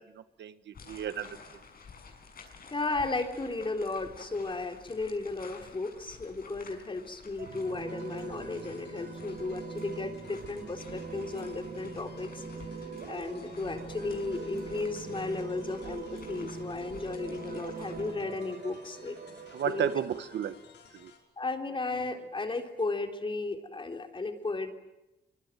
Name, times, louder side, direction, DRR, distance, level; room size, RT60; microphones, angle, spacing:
voice 1, 0.0-1.4 19.5-20.5 20.9-21.1, right 9 dB, 85° right, 12 dB, 1.4 m, -33 dB
sound 1, 0.7-18.1, left 5 dB, 60° left, 6.5 m, -52 dB
voice 2, 2.7-12.4 13.1-19.2 19.6-19.9 21.4-24.7, left 3 dB, 30° left, 5 dB, 3.8 m, -34 dB
sound 2, 7.4-20.0, right 5 dB, 60° right, 4.8 m, -42 dB
sound 3, 7.5-21.2, left 6 dB, 90° left, 5.7 m, -57 dB
25.0 x 25.0 x 9.3 m, 0.95 s
cardioid pair, 105°, 18 cm